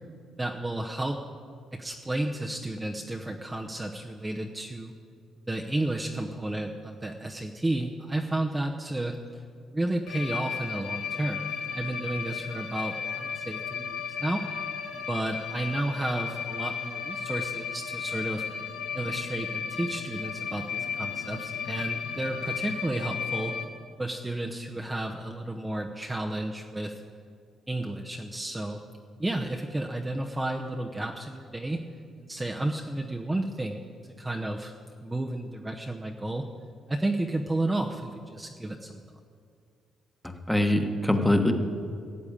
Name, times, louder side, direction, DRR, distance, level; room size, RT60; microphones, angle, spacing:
voice 1, 0.4-1.2 1.7-4.9 5.5-9.4 9.7-14.5 14.9-18.6 18.9-23.5 24.0-27.0 27.7-28.8 29.2-31.8 32.2-33.8 34.2-34.7 35.0-36.4 36.9-39.0, right 1 dB, 15° right, 1 dB, 0.9 m, -32 dB
sound 1, 10.1-23.7, left 7 dB, 90° left, 1.3 m, -34 dB
voice 2, 40.2-41.5, left 1 dB, 5° left, 6 dB, 1.3 m, -23 dB
14.0 x 8.0 x 8.7 m, 2.3 s
cardioid pair, 90°, 0 cm